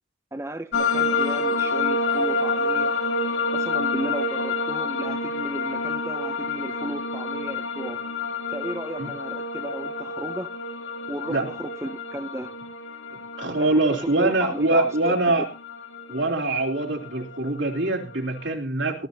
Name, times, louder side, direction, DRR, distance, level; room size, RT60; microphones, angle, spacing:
voice 1, 0.3-2.9 3.5-8.0 8.5-10.6 11.1-12.6 13.6-15.4, right 1 dB, 15° right, 0.7 m, -34 dB
sound 1, 0.7-18.5, left 3 dB, 80° left, 2.3 m, -28 dB
voice 2, 13.4-15.5 16.1-19.1, right 2 dB, 85° right, 3.2 m, -23 dB
19.0 x 13.0 x 2.8 m
head